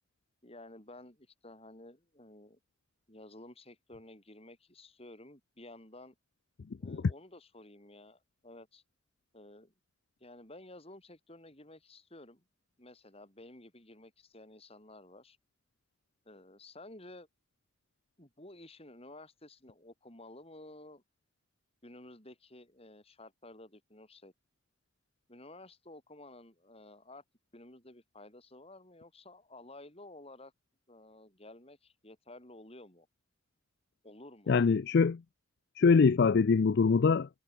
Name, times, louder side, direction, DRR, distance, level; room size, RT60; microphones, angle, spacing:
voice 1, 0.4-2.6 3.1-6.2 6.8-8.8 9.3-9.7 10.2-12.4 12.8-15.4 16.3-17.3 18.2-21.0 21.8-24.3 25.3-27.2 27.5-30.5 30.9-33.1 34.0-34.7, left 1 dB, 30° left, 5.3 m, -53 dB
voice 2, 34.5-35.2 35.8-37.3, left 5 dB, 55° left, 0.4 m, -24 dB
head